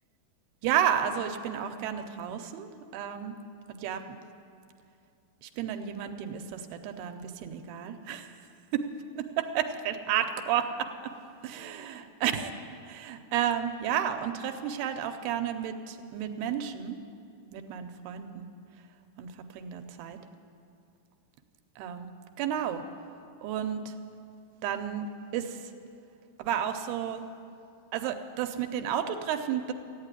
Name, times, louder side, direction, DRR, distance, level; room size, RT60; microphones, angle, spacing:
voice 1, 0.6-3.4 3.8-4.2 5.4-8.4 8.7-8.8 9.2-10.9 11.4-12.5 12.9-17.0 17.5-18.5 19.2-20.2 21.8-22.1 22.4-22.8 23.4-23.9 24.6-25.7 26.4-27.2 27.9-29.7, right 9 dB, 90° right, 7 dB, 2.7 m, -32 dB
14.5 x 9.0 x 9.5 m, 2.5 s
omnidirectional pair, 4.6 m